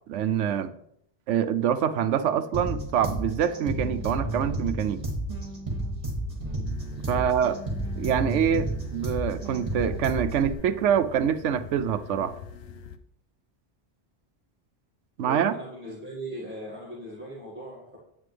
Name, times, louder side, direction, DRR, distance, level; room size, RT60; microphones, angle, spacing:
voice 1, 0.1-0.7 1.3-5.0 7.1-7.6 8.0-12.3 15.2-15.5, right 8 dB, 85° right, 12 dB, 0.9 m, -25 dB
sound 1, 2.5-10.5, right 1 dB, 35° right, 2.0 m, -32 dB
sound 2, 6.6-13.0, left 6 dB, 65° left, 0.8 m, -45 dB
voice 2, 15.3-18.0, right 1 dB, 10° right, -6 dB, 1.8 m, -38 dB
9.3 x 8.3 x 3.3 m, 0.73 s
omnidirectional pair, 1.2 m